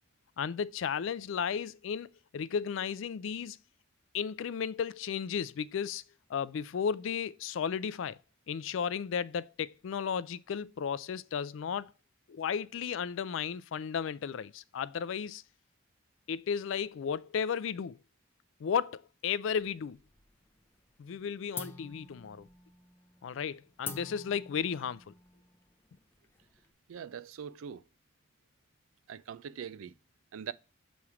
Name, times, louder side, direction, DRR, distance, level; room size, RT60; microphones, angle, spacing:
voice 1, 0.4-3.6 4.1-6.0 6.3-8.2 8.5-11.9 12.3-15.4 16.3-18.0 18.6-20.0 21.0-22.5 23.2-25.1, left 7 dB, 70° left, 0.3 m, -34 dB
sound 1, 19.6-20.5 20.8-21.2 21.5-26.7, left 4 dB, 10° left, 0.5 m, -46 dB
voice 2, 26.9-27.8 29.1-29.9 30.3-30.5, right 7 dB, 80° right, 0.4 m, -42 dB
7.1 x 3.1 x 4.8 m
head